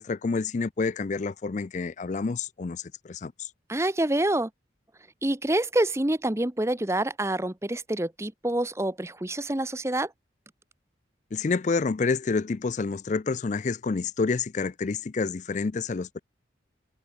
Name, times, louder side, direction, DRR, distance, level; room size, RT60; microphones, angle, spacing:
voice 1, 0.0-3.5 11.3-16.2, left 4 dB, 40° left, 0.4 m, -28 dB
voice 2, 3.7-4.5 5.2-10.1, right 1 dB, 15° right, 0.8 m, -27 dB
head